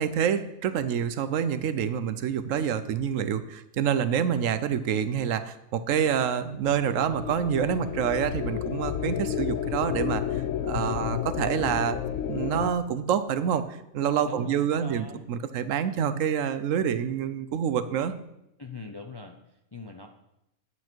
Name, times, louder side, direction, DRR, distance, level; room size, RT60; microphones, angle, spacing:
voice 1, 0.0-12.0 12.3-18.2, right 8 dB, 75° right, 12 dB, 1.0 m, -27 dB
sound 1, 6.6-12.7, left 10 dB, 80° left, 1.0 m, -31 dB
voice 2, 14.2-15.2 18.6-20.1, left 3 dB, 35° left, 4 dB, 0.4 m, -42 dB
9.8 x 8.4 x 4.5 m, 0.85 s
omnidirectional pair, 1.4 m